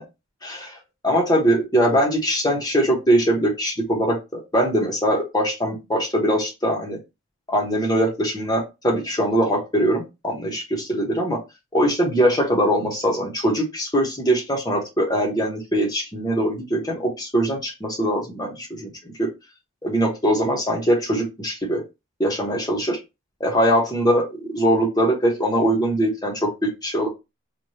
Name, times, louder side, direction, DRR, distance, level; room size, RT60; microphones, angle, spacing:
voice 1, 0.4-0.8 1.0-7.0 7.5-11.4 11.7-19.3 19.8-21.8 22.2-23.0 23.4-27.1, right 1 dB, 20° left, -1 dB, 1.1 m, -22 dB
4.8 x 2.6 x 2.8 m, 0.25 s
head